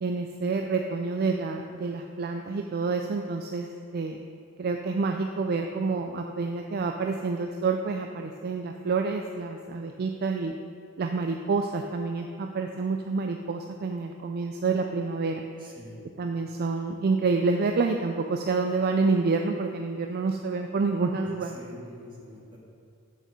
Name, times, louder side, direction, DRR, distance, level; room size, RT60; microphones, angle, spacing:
voice 1, 0.0-3.7 3.9-4.2 4.6-10.5 11.0-15.4 16.2-21.5, right 4 dB, 45° right, 4 dB, 0.4 m, -28 dB
voice 2, 15.6-16.0 21.2-22.6, equal, 20° right, -4 dB, 1.6 m, -45 dB
6.6 x 6.4 x 6.3 m, 2.4 s
head